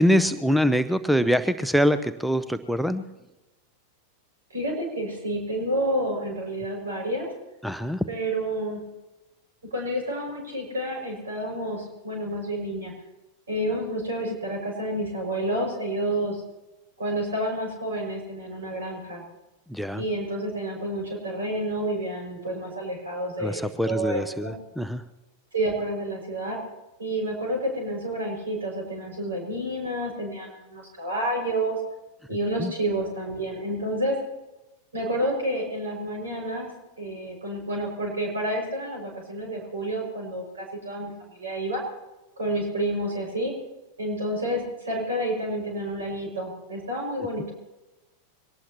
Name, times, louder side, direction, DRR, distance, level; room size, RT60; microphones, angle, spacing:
voice 1, 0.0-3.0 7.6-8.1 19.7-20.0 23.4-25.0 32.6-32.7, equal, ahead, 12 dB, 0.6 m, -24 dB
voice 2, 4.5-7.3 8.1-8.8 9.7-12.9 13.5-16.4 17.0-19.2 19.9-24.5 25.5-26.6 27.0-31.8 32.3-34.2 34.9-36.7 37.0-41.8 42.4-43.5 44.0-47.5, right 1 dB, 70° right, 0 dB, 6.1 m, -29 dB
23.0 x 18.5 x 3.0 m, 1.1 s
figure-of-eight pair, 90°, 0 cm